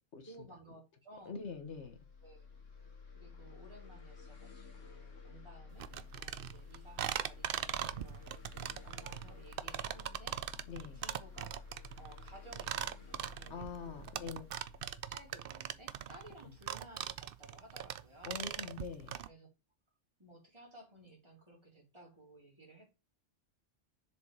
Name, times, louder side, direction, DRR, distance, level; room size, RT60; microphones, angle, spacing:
voice 1, 0.2-1.4 2.2-2.5 3.1-8.3 8.8-10.4 10.8-11.7 12.0-14.5 15.1-18.5 19.3-19.5 20.2-22.9, right 1 dB, 20° right, 3.6 m, -57 dB
voice 2, 1.2-2.0 10.7-11.0 13.5-14.4 16.4-16.5 18.2-19.2, left 5 dB, 70° left, 1.3 m, -44 dB
sound 1, 1.3-16.8, left 5 dB, 85° left, 2.0 m, -53 dB
sound 2, 5.8-19.3, right 10 dB, 60° right, 0.7 m, -40 dB
7.0 x 5.0 x 4.6 m
omnidirectional pair, 1.3 m